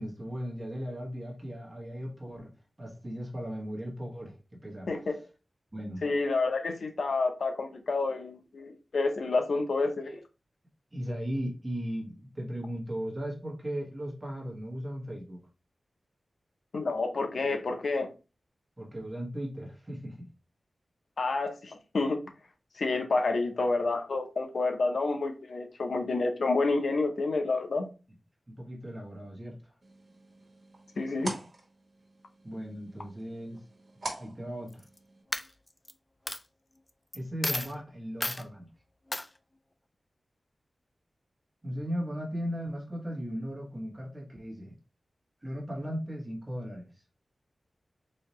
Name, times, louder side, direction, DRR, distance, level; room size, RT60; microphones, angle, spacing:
voice 1, 0.0-2.5 2.8-4.4 4.6-4.9 5.7-6.0 10.9-15.4 18.8-20.3 28.5-29.6 32.4-33.6 34.2-34.8 37.1-38.7 41.6-44.7 45.4-46.9, equal, 20° right, 1.3 m, -37 dB
voice 2, 6.0-10.2 16.7-18.1 21.2-22.2 22.8-27.9 31.0-31.3, left 3 dB, 75° left, 0.7 m, -29 dB
sound 1, 29.8-35.2, right 2 dB, 50° right, 1.5 m, -44 dB
Coin (dropping), 34.7-35.0 35.3-35.9 36.3-36.4 37.1-37.2 37.4-37.7 38.2-38.4 39.1-39.3, left 1 dB, 20° left, 0.3 m, -32 dB
4.1 x 2.8 x 3.0 m
wide cardioid pair, 120°, 0 cm